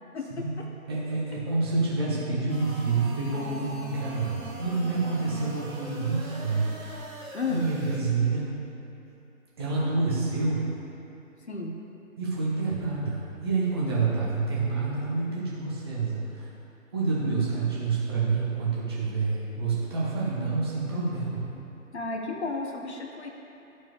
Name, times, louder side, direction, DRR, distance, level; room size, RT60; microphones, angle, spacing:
voice 1, 0.9-6.7 7.2-8.5 9.6-10.6 12.2-16.2 16.9-21.5, right 3 dB, 20° right, -7 dB, 1.0 m, -28 dB
sound 1, 2.5-8.0, right 2 dB, 75° right, 1.7 m, -42 dB
voice 2, 7.3-7.7 11.5-11.7 21.9-23.3, left 4 dB, 50° left, 1 dB, 1.0 m, -33 dB
13.5 x 4.5 x 3.0 m, 3.0 s
figure-of-eight pair, 145°, 42 cm